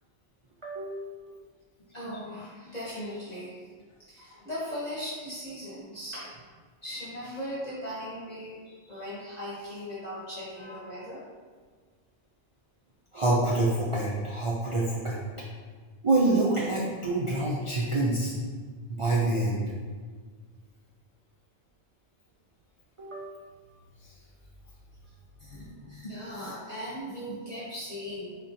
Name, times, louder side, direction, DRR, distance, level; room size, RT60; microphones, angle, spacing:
voice 1, 0.6-1.1 13.1-15.2 16.0-18.3 18.9-19.6 23.0-23.3, right 2 dB, 50° right, -4 dB, 0.4 m, -26 dB
voice 2, 1.9-3.6 4.0-6.3 6.8-11.2 25.4-28.4, equal, 40° left, -9 dB, 1.0 m, -38 dB
4.0 x 3.6 x 2.7 m, 1.5 s
omnidirectional pair, 1.1 m